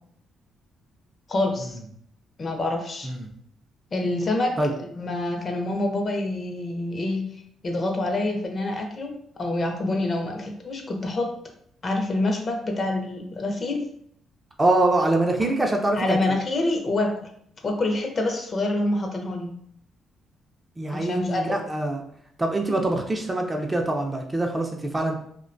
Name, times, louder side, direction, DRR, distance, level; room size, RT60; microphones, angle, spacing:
voice 1, 1.3-1.8 2.4-3.1 3.9-4.5 4.9-7.2 7.6-11.3 11.8-13.9 16.0-17.3 17.6-19.5 20.9-21.6, left 2 dB, 40° left, 2 dB, 0.5 m, -26 dB
voice 2, 14.6-16.4 20.8-22.0 22.4-25.1, right 2 dB, 20° right, 2 dB, 0.4 m, -24 dB
2.4 x 2.1 x 2.5 m, 0.66 s
cardioid pair, 90°, 0 cm